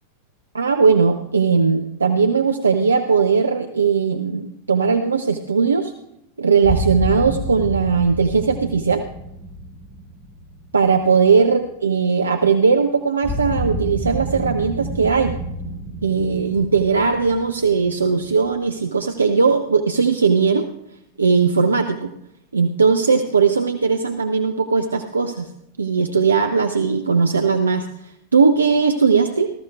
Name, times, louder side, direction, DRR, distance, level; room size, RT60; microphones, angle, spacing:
voice 1, 0.5-5.9 6.4-9.0 10.7-15.3 16.0-20.7 21.2-22.1 22.5-25.5 25.8-29.5, right 5 dB, 75° right, 7 dB, 0.5 m, -18 dB
sound 1, 6.6-11.6 13.2-18.9, right 1 dB, 15° left, 1.9 m, -29 dB
19.0 x 13.5 x 2.4 m, 0.81 s
figure-of-eight pair, 90°, 0 cm